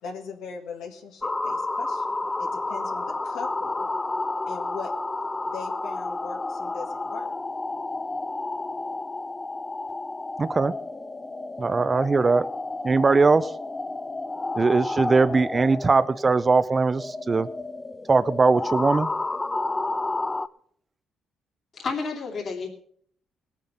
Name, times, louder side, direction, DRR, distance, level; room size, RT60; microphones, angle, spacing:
voice 1, 0.0-3.9 4.5-4.9 5.4-7.3, left 5 dB, 85° left, 2 dB, 1.8 m, -39 dB
sound 1, 1.2-20.5, left 2 dB, 20° left, 0.5 m, -31 dB
voice 2, 10.4-10.7 11.6-12.5 12.8-13.5 14.6-17.5 18.1-19.1, right 4 dB, 30° right, 15 dB, 0.5 m, -20 dB
voice 3, 21.7-22.7, left 4 dB, 50° left, -2 dB, 2.7 m, -30 dB
19.5 x 7.2 x 5.5 m, 0.62 s
cardioid pair, 90°, 0 cm